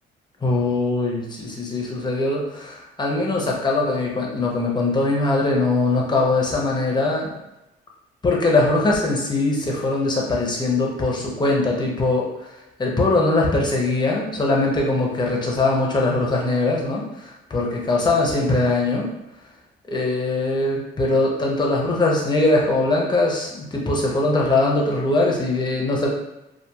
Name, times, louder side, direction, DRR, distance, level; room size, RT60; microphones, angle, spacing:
voice 1, 0.4-7.3 8.2-12.3 12.8-19.1 19.9-26.1, left 2 dB, 20° left, -2 dB, 0.7 m, -21 dB
2.8 x 2.4 x 2.3 m, 0.94 s
cardioid pair, 90°, 20 cm